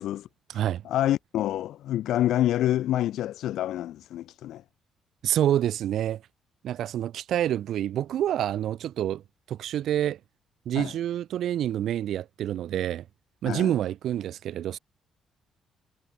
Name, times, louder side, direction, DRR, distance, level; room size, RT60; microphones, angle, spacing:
voice 1, 0.0-0.6 0.8-4.6 10.7-10.9 13.5-13.7, left 13 dB, 80° left, 1.0 m, -27 dB
voice 2, 5.2-6.2 6.6-9.2 9.5-10.2 10.7-13.0 13.4-14.8, right 11 dB, 75° right, 1.1 m, -27 dB
cardioid pair, 90°, 0 cm